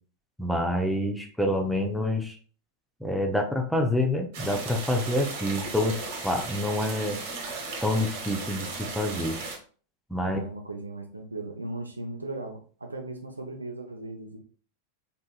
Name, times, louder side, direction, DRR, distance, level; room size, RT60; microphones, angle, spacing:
voice 1, 0.4-2.4 3.0-7.2 7.8-9.4 10.1-10.4, left 1 dB, ahead, 3 dB, 0.6 m, -27 dB
sound 1, 4.3-9.6, right 3 dB, 50° right, 1.1 m, -36 dB
voice 2, 10.2-14.4, right 2 dB, 80° right, 4 dB, 0.6 m, -37 dB
4.0 x 3.7 x 2.4 m, 0.42 s
figure-of-eight pair, 90°, 0 cm